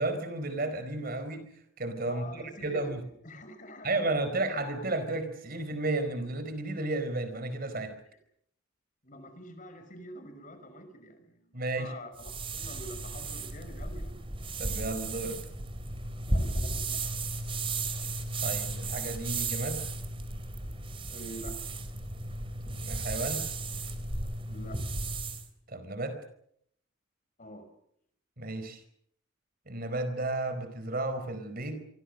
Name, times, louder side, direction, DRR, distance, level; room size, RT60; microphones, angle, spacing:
voice 1, 0.0-1.4 1.8-3.0 3.8-7.9 11.5-11.9 14.6-15.4 18.4-19.8 22.7-23.5 25.7-26.2 28.4-28.8 29.7-31.8, right 2 dB, 45° right, 10 dB, 4.5 m, -33 dB
voice 2, 2.1-2.9 3.2-4.1 9.0-14.2 16.3-17.0 21.1-21.6 24.5-24.8 27.4-27.7, equal, 40° left, 9 dB, 5.7 m, -46 dB
sound 1, 12.2-25.5, right 2 dB, 25° right, 3.2 m, -34 dB
27.5 x 24.5 x 6.6 m, 0.69 s
head